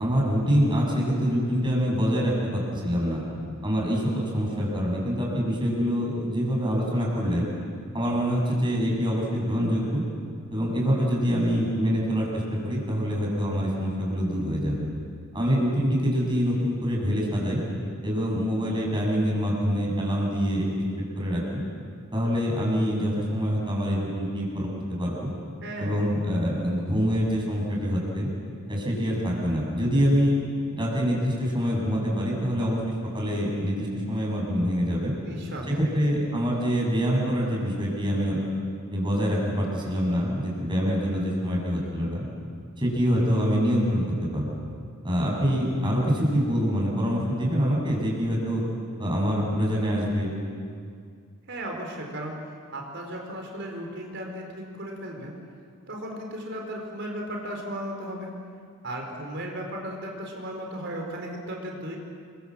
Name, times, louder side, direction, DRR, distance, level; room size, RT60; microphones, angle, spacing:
voice 1, 0.0-3.2 3.6-7.5 7.9-10.0 10.5-14.8 15.3-17.6 18.0-20.9 21.2-21.6 22.1-24.7 25.0-25.3 25.8-28.3 28.7-30.4 30.7-35.1 35.7-38.4 38.9-42.2 42.8-44.0 44.3-44.5 45.0-48.6 49.0-50.3, equal, 20° right, -2 dB, 7.2 m, -25 dB
voice 2, 25.6-26.0 35.2-35.9 51.5-52.4 52.7-55.3 55.9-58.3 58.8-62.0, right 1 dB, 55° right, 1 dB, 4.7 m, -35 dB
29.5 x 24.5 x 7.7 m, 2.2 s
head